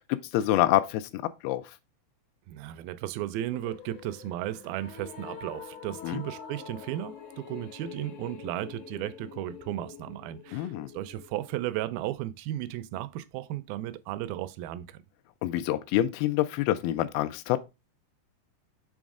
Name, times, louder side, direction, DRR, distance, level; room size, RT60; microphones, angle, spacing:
voice 1, 0.1-1.6 6.0-6.2 10.5-10.9 15.4-17.6, left 14 dB, 85° left, 2.4 m, -27 dB
voice 2, 2.5-15.0, right 14 dB, 80° right, 2.3 m, -35 dB
sound 1, 3.5-11.8, left 7 dB, 65° left, 2.5 m, -46 dB
6.2 x 3.8 x 4.7 m
omnidirectional pair, 4.3 m